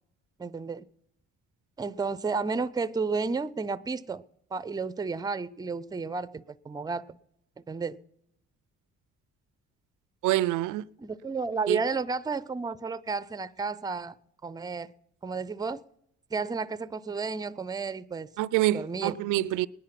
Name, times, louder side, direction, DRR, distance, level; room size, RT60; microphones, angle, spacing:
voice 1, 0.4-0.8 1.8-4.2 4.5-7.2 7.7-8.0 11.0-14.1 14.4-14.9 15.2-15.8 16.3-18.3 18.7-19.2, right 4 dB, 15° right, 0.5 m, -32 dB
voice 2, 10.2-10.9 11.7-11.8 18.4-19.7, right 15 dB, 90° right, 0.5 m, -26 dB
18.0 x 10.5 x 5.8 m
cardioid pair, 90°, 30 cm